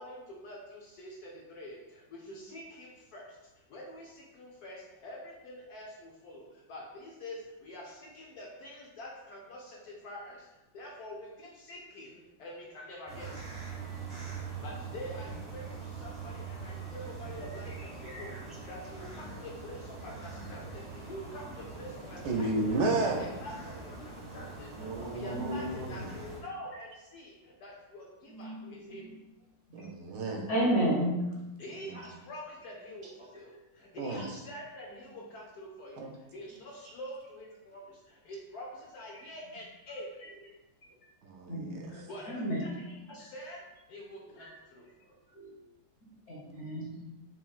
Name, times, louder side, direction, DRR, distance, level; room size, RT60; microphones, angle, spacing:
voice 1, 0.0-13.4 14.4-22.5 23.0-29.1 31.6-40.2 41.9-43.6 43.9-45.2, left 1 dB, 65° left, 1.1 m, -46 dB
sound 1, 13.1-26.4, right 4 dB, 30° right, 0.7 m, -43 dB
voice 2, 22.2-23.3 24.8-26.2 29.7-30.5 31.9-32.1 33.0-33.1 34.0-34.4 36.0-36.1 36.8-36.9 41.2-41.9, right 2 dB, 75° right, 1.1 m, -33 dB
voice 3, 25.2-25.6 26.7-26.8 28.3-29.1 29.7-29.9 30.5-31.1 33.3-33.4 39.1-39.3 41.5-41.8 42.3-42.6 44.2-44.5 45.3-45.6 46.0-47.0, right 1 dB, 40° left, 1.4 m, -33 dB
4.9 x 3.0 x 2.3 m
omnidirectional pair, 2.0 m